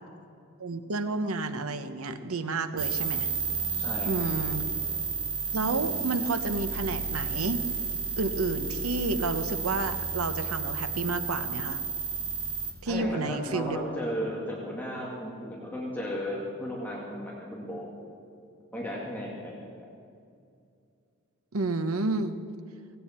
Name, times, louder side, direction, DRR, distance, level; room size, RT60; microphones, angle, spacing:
voice 1, 0.6-3.3 4.0-4.7 5.5-7.6 8.2-11.8 12.8-13.8 21.5-22.4, right 3 dB, 90° right, 10 dB, 1.0 m, -30 dB
sound 1, 2.8-12.7, right 5 dB, 25° right, 1.6 m, -32 dB
voice 2, 3.7-4.1 12.9-17.9 18.7-19.9, equal, 10° left, -4 dB, 1.9 m, -35 dB
17.5 x 16.0 x 4.4 m, 2.4 s
head